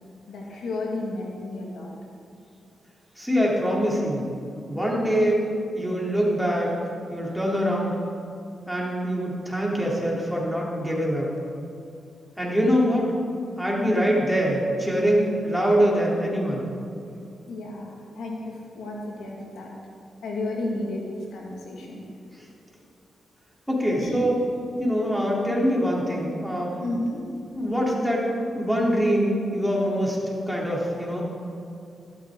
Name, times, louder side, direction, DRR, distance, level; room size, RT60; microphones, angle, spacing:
voice 1, 0.3-1.9 13.8-14.1 17.5-19.7 20.2-22.0 23.8-24.3 26.8-27.3, left 2 dB, 90° left, -2 dB, 2.1 m, -32 dB
voice 2, 3.2-4.3 4.7-5.5 5.7-6.8 7.1-7.9 8.7-11.3 12.4-13.1 13.6-16.6 23.7-24.4 24.8-26.7 27.5-28.3 28.6-31.2, equal, ahead, -4 dB, 3.6 m, -24 dB
14.5 x 13.0 x 3.9 m, 2.5 s
cardioid pair, 65°, 0 cm